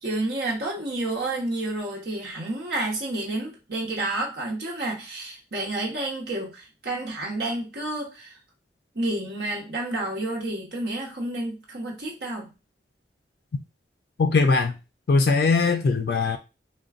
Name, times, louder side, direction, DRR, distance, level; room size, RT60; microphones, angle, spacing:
voice 1, 0.0-8.4 8.9-12.5, right 2 dB, 65° right, 1.0 m, -30 dB
voice 2, 14.2-14.8 15.1-16.4, left 4 dB, 60° left, 0.3 m, -20 dB
3.7 x 2.2 x 2.4 m
head